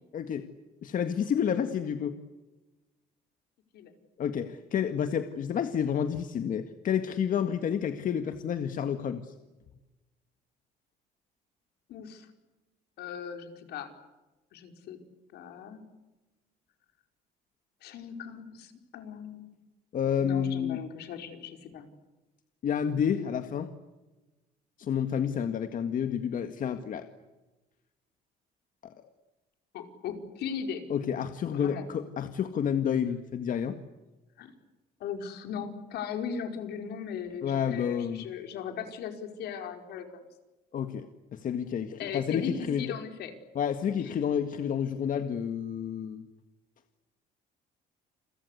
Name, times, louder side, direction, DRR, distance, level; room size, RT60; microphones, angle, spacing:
voice 1, 0.1-0.5 0.8-2.2 4.2-9.3 19.9-20.8 22.6-23.7 24.8-27.1 28.8-28.9 30.9-33.8 37.4-38.3 40.7-42.8 43.6-46.3, left 8 dB, 50° left, 8 dB, 1.9 m, -30 dB
voice 2, 11.9-12.3 13.0-13.9 14.5-15.0 15.3-15.8 17.8-19.5 20.2-21.9 29.7-30.9 31.5-31.8 34.4-34.5 35.0-40.2 42.0-43.3 44.0-44.1, left 7 dB, 75° left, 6 dB, 5.0 m, -38 dB
29.5 x 23.0 x 8.2 m, 1.1 s
cardioid pair, 110°, 17 cm